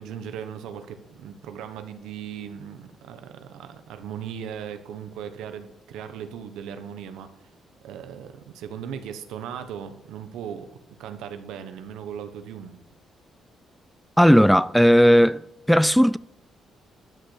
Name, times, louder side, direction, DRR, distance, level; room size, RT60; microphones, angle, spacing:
voice 1, 0.0-7.5 7.8-10.7 11.0-12.8, right 8 dB, 90° right, 1.2 m, -38 dB
voice 2, 14.2-15.4 15.7-16.2, equal, ahead, 0.3 m, -16 dB
12.5 x 6.8 x 6.5 m
cardioid pair, 90°, 0 cm